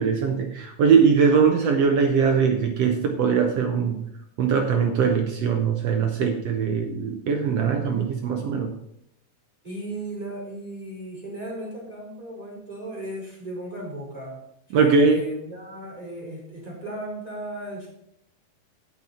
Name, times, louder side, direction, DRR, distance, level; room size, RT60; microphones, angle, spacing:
voice 1, 0.0-4.0 4.4-8.7 14.7-15.2, right 5 dB, 75° right, 3 dB, 1.5 m, -21 dB
voice 2, 9.6-14.4 14.7-17.9, right 1 dB, 10° right, -4 dB, 4.4 m, -36 dB
16.5 x 6.2 x 4.3 m, 0.77 s
omnidirectional pair, 4.2 m